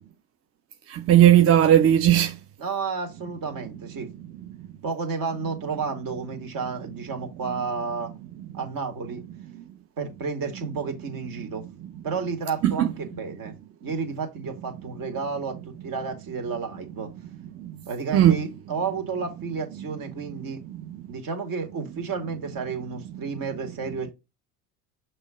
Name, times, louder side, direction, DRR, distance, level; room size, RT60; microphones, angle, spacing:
voice 1, 0.9-2.3 12.6-12.9 17.6-17.7 18.1-18.3, right 11 dB, 30° right, 0.5 m, -17 dB
voice 2, 2.6-4.1 4.8-8.1 8.5-9.2 10.0-11.6 12.0-13.6 13.8-17.1 17.9-20.6 21.1-24.1, right 5 dB, 50° right, 2.3 m, -31 dB
6.2 x 3.3 x 4.9 m
hypercardioid pair, 80°, 45 cm